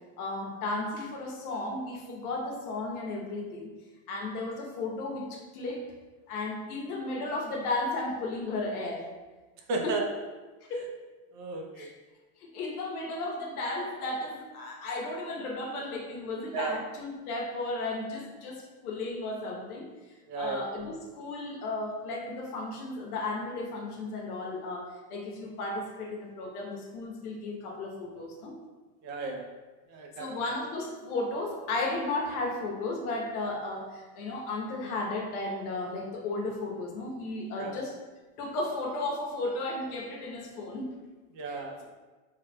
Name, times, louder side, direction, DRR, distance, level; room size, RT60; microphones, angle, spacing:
voice 1, 0.2-3.7 4.1-5.8 6.3-9.1 9.8-9.9 10.6-10.9 11.8-11.9 12.4-19.9 20.3-28.5 30.2-37.9 38.4-40.9 41.4-41.6, left 2 dB, 90° left, 0 dB, 1.0 m, -34 dB
voice 2, 9.7-10.1 11.3-11.9 16.5-16.8 20.3-20.6 29.0-29.5 29.9-30.3 37.6-37.8 41.3-41.9, right 3 dB, 45° right, 2 dB, 0.6 m, -34 dB
4.2 x 3.4 x 2.2 m, 1.3 s
supercardioid pair, 135°, 43 cm